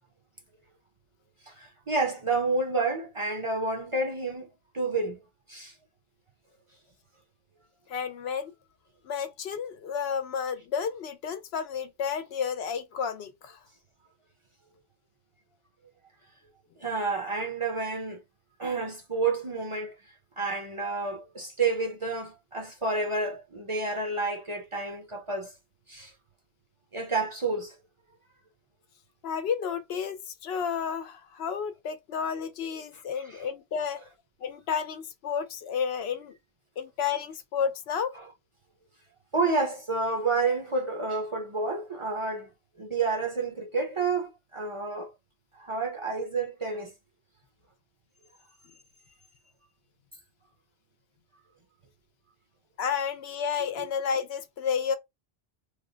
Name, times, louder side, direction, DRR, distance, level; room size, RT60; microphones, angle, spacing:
voice 1, 1.5-4.5 4.7-5.2 5.5-5.8 16.8-18.2 18.6-20.0 20.4-25.5 25.9-26.1 26.9-27.8 32.9-33.0 33.3-33.4 38.2-38.3 39.3-42.5 42.8-45.1 45.6-46.9, right 3 dB, 35° right, 0.6 m, -29 dB
voice 2, 7.9-8.5 9.0-13.6 29.2-34.0 34.4-36.3 36.8-38.2 52.8-55.0, left 7 dB, 75° left, 0.8 m, -31 dB
3.2 x 2.1 x 3.7 m
omnidirectional pair, 1.1 m